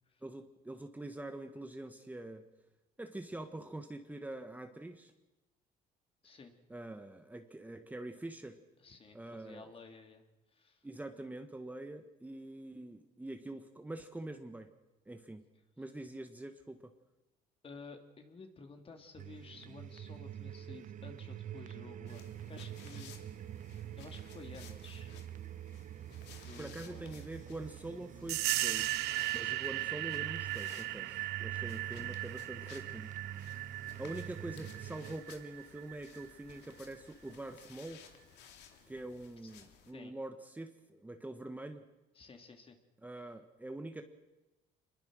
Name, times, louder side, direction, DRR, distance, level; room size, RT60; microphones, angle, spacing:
voice 1, 0.2-2.4 3.0-5.1 6.7-8.6 9.1-9.7 10.8-14.7 15.0-15.4 15.8-16.9 26.6-29.0 29.3-33.1 34.0-38.0 38.9-41.8 43.0-44.0, right 2 dB, 10° right, 6 dB, 1.5 m, -45 dB
voice 2, 8.8-10.2 10.5-10.9 17.6-23.1 24.0-25.1 26.4-27.2 31.9-32.1 39.4-39.5 39.9-40.1 42.1-42.8, left 4 dB, 35° left, 5 dB, 3.0 m, -53 dB
sound 1, 19.2-35.2, right 10 dB, 50° right, 0.9 m, -47 dB
sound 2, 22.1-39.9, left 8 dB, 90° left, 2.6 m, -58 dB
sound 3, 28.3-36.6, right 18 dB, 85° right, 0.7 m, -37 dB
26.5 x 21.5 x 6.4 m, 1.1 s
cardioid pair, 110°, 17 cm